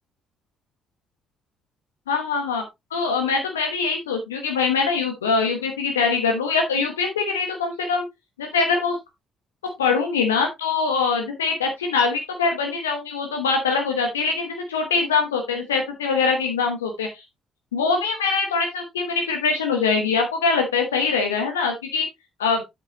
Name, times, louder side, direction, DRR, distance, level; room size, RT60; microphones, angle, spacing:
voice 1, 2.1-2.6 2.9-8.0 8.4-9.0 9.8-17.2 17.7-22.1 22.4-22.6, left 4 dB, 85° left, 4 dB, 1.1 m, -23 dB
8.2 x 7.3 x 2.9 m, 0.20 s
figure-of-eight pair, 45°, 0 cm